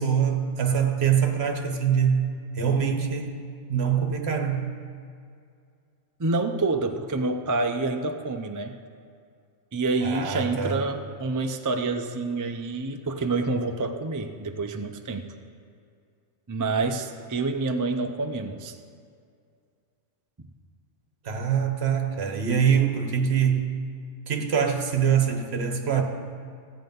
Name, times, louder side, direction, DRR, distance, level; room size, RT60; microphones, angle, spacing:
voice 1, 0.0-2.3 2.5-3.4 3.7-4.7 10.0-10.8 21.2-23.7 24.3-26.0, right 7 dB, 60° right, 4 dB, 1.3 m, -24 dB
voice 2, 6.2-8.7 9.7-15.3 16.5-18.8, right 3 dB, 30° right, 5 dB, 0.4 m, -27 dB
15.5 x 8.1 x 5.3 m, 2.3 s
omnidirectional pair, 1.2 m